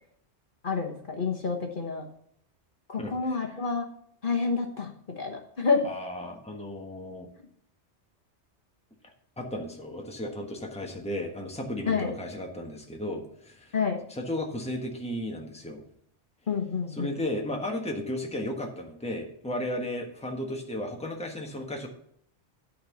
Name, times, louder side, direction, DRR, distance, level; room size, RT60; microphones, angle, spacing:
voice 1, 0.6-2.0 2.9-3.8 4.2-4.9 5.2-5.9 11.9-12.1 13.7-14.0 16.5-17.1, left 5 dB, 50° left, 1 dB, 1.3 m, -28 dB
voice 2, 3.0-3.4 5.8-7.3 9.4-13.7 14.1-15.8 17.0-21.9, left 1 dB, 5° left, 1 dB, 1.3 m, -34 dB
12.0 x 4.1 x 7.0 m, 0.68 s
omnidirectional pair, 1.2 m